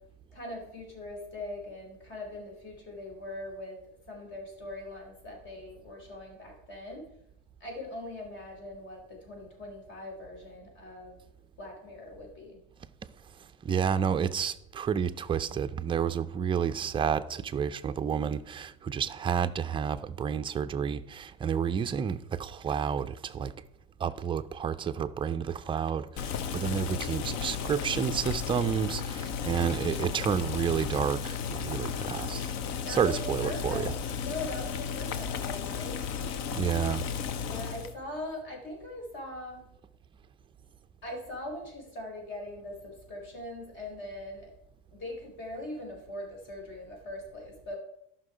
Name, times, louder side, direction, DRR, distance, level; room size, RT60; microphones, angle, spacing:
voice 1, 0.3-3.8 4.1-7.0 7.6-11.2 11.6-12.6 29.4-29.7 32.8-33.8 34.2-36.0 37.4-39.6 41.0-44.5 44.9-47.8, left 1 dB, 40° left, 4.1 m, -41 dB
voice 2, 13.6-23.5 24.0-32.5 32.9-33.9 36.5-37.0, right 7 dB, 15° right, 0.4 m, -30 dB
Boiling, 26.2-37.9, left 7 dB, 65° left, 0.9 m, -34 dB
13.0 x 5.8 x 4.9 m
supercardioid pair, 130°, 29 cm